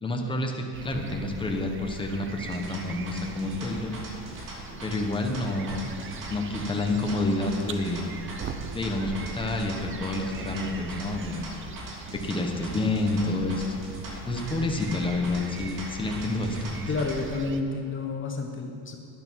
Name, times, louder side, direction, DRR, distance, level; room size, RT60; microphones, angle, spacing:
voice 1, 0.0-3.9 4.8-5.8 6.3-8.1 8.7-11.5 12.1-13.6 14.2-16.8, left 2 dB, 10° left, 2 dB, 1.3 m, -29 dB
sound 1, 0.7-17.6, right 5 dB, 30° right, 0.7 m, -41 dB
sound 2, 2.4-17.2, right 1 dB, 50° right, 3.0 m, -42 dB
voice 2, 16.9-19.0, left 3 dB, 30° left, 3 dB, 1.0 m, -30 dB
11.5 x 11.0 x 4.8 m, 2.6 s
cardioid pair, 125°, 40 cm